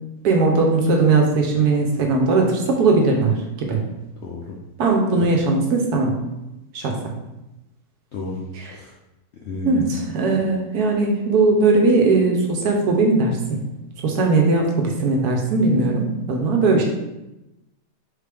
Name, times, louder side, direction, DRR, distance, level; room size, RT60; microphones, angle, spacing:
voice 1, 0.2-3.8 4.8-6.2 6.7-7.0 9.6-13.6 14.0-16.8, right 3 dB, 70° right, 1 dB, 1.2 m, -19 dB
voice 2, 4.2-4.6 8.1-8.4 8.7-8.9 9.4-10.1, left 3 dB, 70° left, -2 dB, 0.6 m, -31 dB
4.1 x 3.3 x 3.4 m, 0.96 s
omnidirectional pair, 1.8 m